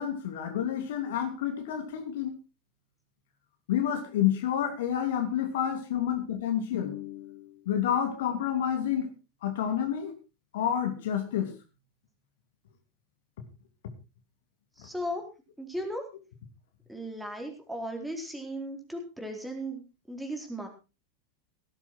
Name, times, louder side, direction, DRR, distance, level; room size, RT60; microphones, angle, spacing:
voice 1, 0.0-2.4 3.7-9.1 9.4-10.1 10.5-11.5, left 9 dB, 60° left, 5 dB, 2.8 m, -29 dB
voice 2, 14.8-15.2 15.6-16.0 16.9-19.8 20.1-20.7, equal, 5° right, 3 dB, 4.1 m, -36 dB
17.5 x 10.5 x 4.5 m, 0.31 s
figure-of-eight pair, 85°, 0 cm